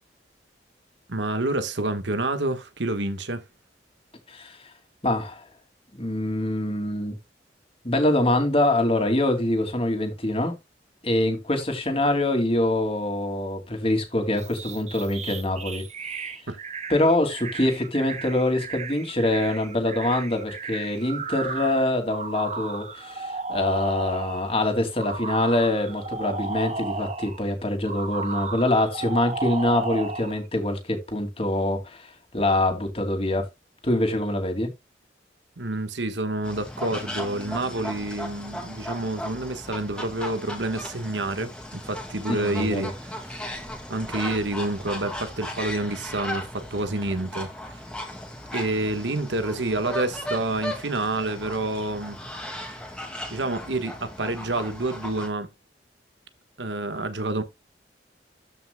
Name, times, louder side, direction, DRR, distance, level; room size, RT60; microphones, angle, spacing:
voice 1, 1.1-3.4 16.5-16.6 35.6-43.1 43.9-47.8 48.5-52.2 53.3-55.5 56.6-57.4, right 2 dB, 80° right, 1.5 m, -28 dB
voice 2, 5.0-5.4 6.0-7.1 7.8-10.5 11.0-15.8 16.9-33.5 33.8-34.7 42.3-42.9, left 1 dB, 30° left, 2.7 m, -24 dB
sound 1, 14.3-24.5 25.0-27.4 27.9-30.4, right 4 dB, 40° right, 1.2 m, -34 dB
sound 2, 36.4-55.3, left 1 dB, 5° left, 2.2 m, -36 dB
14.0 x 5.8 x 2.3 m
head